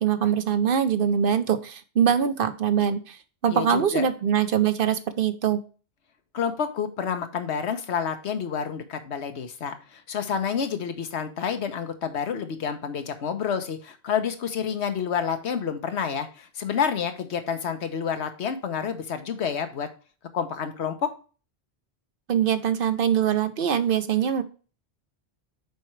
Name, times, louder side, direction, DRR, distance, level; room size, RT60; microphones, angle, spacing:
voice 1, 0.0-3.2 3.4-5.6 22.3-24.4, right 8 dB, 60° right, 11 dB, 0.8 m, -23 dB
voice 2, 3.5-4.1 6.3-19.9 20.3-21.1, left 7 dB, 80° left, 8 dB, 1.2 m, -29 dB
6.9 x 4.7 x 3.1 m, 0.36 s
omnidirectional pair, 1.1 m